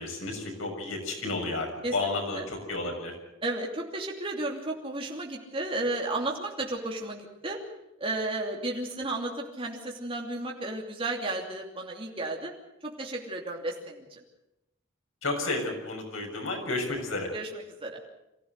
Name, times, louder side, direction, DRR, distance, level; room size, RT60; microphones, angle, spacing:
voice 1, 0.0-1.7 1.9-3.1 15.2-17.3, left 2 dB, 85° left, 2 dB, 6.6 m, -31 dB
voice 2, 1.8-2.5 3.4-7.6 8.0-12.5 12.8-14.2 17.3-18.0, right 2 dB, 30° right, -1 dB, 2.8 m, -33 dB
24.5 x 15.5 x 8.2 m, 0.92 s
head